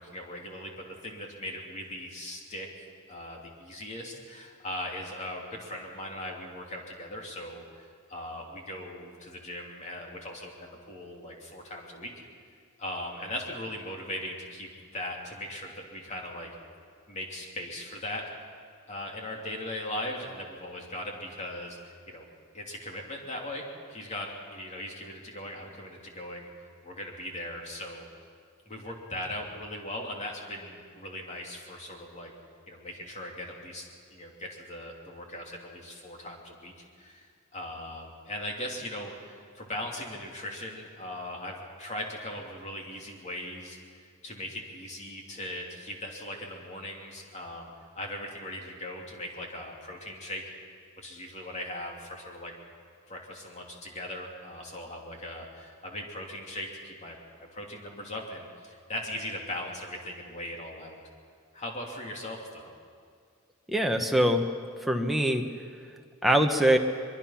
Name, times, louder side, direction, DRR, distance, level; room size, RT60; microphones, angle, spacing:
voice 1, 0.0-12.1 12.8-16.5 17.1-18.2 18.9-22.2 22.5-23.6 23.9-26.5 26.8-28.0 28.7-32.3 32.7-47.7 47.9-50.4 51.0-52.5 53.1-61.0 61.5-62.7, left 1 dB, 30° left, 0 dB, 3.1 m, -39 dB
voice 2, 63.7-64.5 64.9-65.4 66.2-66.8, right 1 dB, ahead, 2 dB, 1.1 m, -23 dB
23.5 x 22.5 x 5.9 m, 2.2 s
head